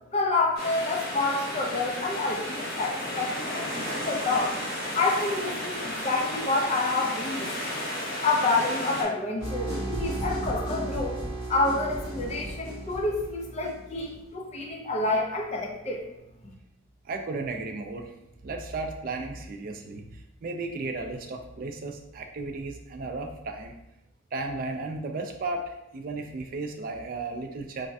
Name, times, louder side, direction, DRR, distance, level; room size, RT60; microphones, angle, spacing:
voice 1, 0.1-4.6 4.9-7.7 8.2-11.1 11.5-16.0, left 3 dB, 35° left, -1 dB, 0.5 m, -28 dB
sound 1, 0.6-9.0, equal, 50° left, 0.9 m, -33 dB
sound 2, 9.4-14.1, right 1 dB, 80° left, 1.1 m, -34 dB
voice 2, 17.0-18.1 18.4-23.7 24.3-27.9, right 3 dB, 45° right, 4 dB, 0.3 m, -34 dB
3.2 x 2.1 x 2.6 m, 0.87 s
head